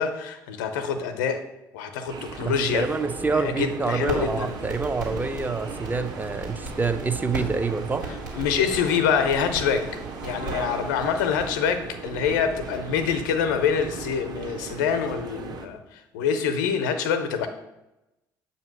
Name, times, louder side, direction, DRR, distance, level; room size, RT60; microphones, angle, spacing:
voice 1, 0.0-1.4 1.7-2.9 3.3-4.6 8.3-9.8 10.2-15.8 16.1-17.5, left 6 dB, 70° left, 8 dB, 0.7 m, -25 dB
sound 1, 2.1-15.7, right 4 dB, 45° right, 0.9 m, -38 dB
voice 2, 2.4-8.0, right 4 dB, 20° right, 8 dB, 0.6 m, -27 dB
sound 2, 3.8-11.5, right 2 dB, 90° right, 1.8 m, -37 dB
7.2 x 2.8 x 5.9 m, 0.95 s
figure-of-eight pair, 55°, 10 cm